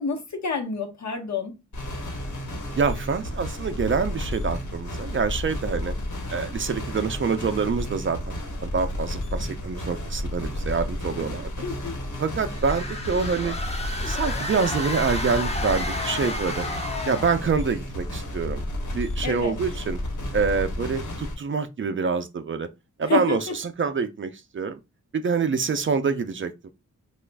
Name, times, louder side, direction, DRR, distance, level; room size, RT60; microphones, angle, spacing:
voice 1, 0.0-1.6 11.6-12.0 19.2-19.6 23.0-23.4, left 4 dB, 65° left, 1.0 m, -29 dB
sound 1, 1.7-21.3, left 1 dB, 85° left, 1.2 m, -32 dB
voice 2, 2.8-5.9 6.3-11.5 12.2-13.6 14.0-16.6 17.1-18.6 18.9-20.0 20.3-22.7 23.0-24.8 25.1-26.7, right 5 dB, 45° right, 0.4 m, -26 dB
sound 2, 12.5-17.4, left 2 dB, 20° left, 0.6 m, -32 dB
2.9 x 2.4 x 3.3 m
wide cardioid pair, 120°, 30 cm